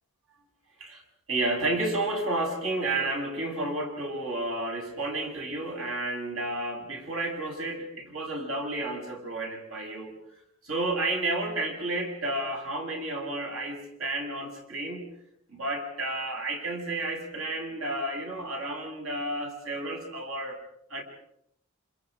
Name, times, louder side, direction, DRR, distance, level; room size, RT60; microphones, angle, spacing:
voice 1, 1.3-10.2 10.6-15.1 15.5-20.6 20.9-21.0, right 2 dB, 80° right, 2 dB, 7.4 m, -31 dB
28.5 x 27.5 x 5.1 m, 0.73 s
head